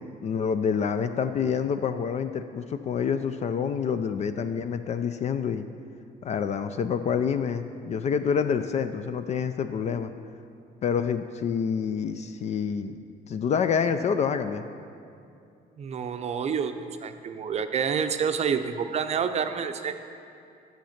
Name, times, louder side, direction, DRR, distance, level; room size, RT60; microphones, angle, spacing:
voice 1, 0.0-5.7 6.2-10.1 10.8-12.9 13.3-14.6, left 7 dB, 40° left, 9 dB, 0.4 m, -27 dB
voice 2, 15.8-16.7 17.0-19.9, right 7 dB, 40° right, 8 dB, 0.6 m, -28 dB
9.0 x 7.0 x 5.8 m, 2.5 s
cardioid pair, 110°, 17 cm